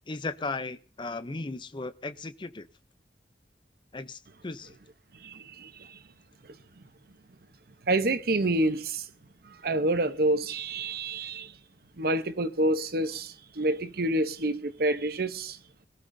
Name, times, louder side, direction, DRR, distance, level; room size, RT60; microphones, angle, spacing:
voice 1, 0.1-2.7 3.9-4.8, left 3 dB, 25° left, 0.6 m, -36 dB
voice 2, 5.2-6.0 7.9-9.0 9.6-11.5 12.0-15.6, right 2 dB, 55° right, 0.8 m, -28 dB
22.0 x 13.5 x 2.7 m
head